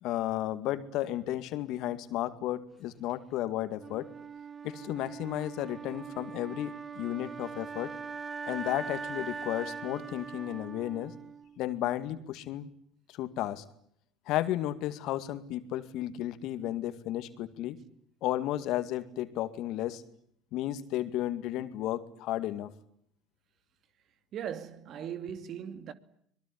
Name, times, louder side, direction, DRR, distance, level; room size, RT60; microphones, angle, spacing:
voice 1, 0.0-4.1 4.6-7.9 8.5-11.1 11.6-12.7 13.1-13.6 14.3-17.8 18.2-20.0 20.5-22.7, left 13 dB, 65° left, 2.2 m, -33 dB
Wind instrument woodwind instrument, 3.8-11.8, right 5 dB, 30° right, 1.5 m, -41 dB
voice 2, 24.3-25.9, right 9 dB, 55° right, 2.5 m, -38 dB
24.5 x 22.0 x 10.0 m
hypercardioid pair, 70°, 0 cm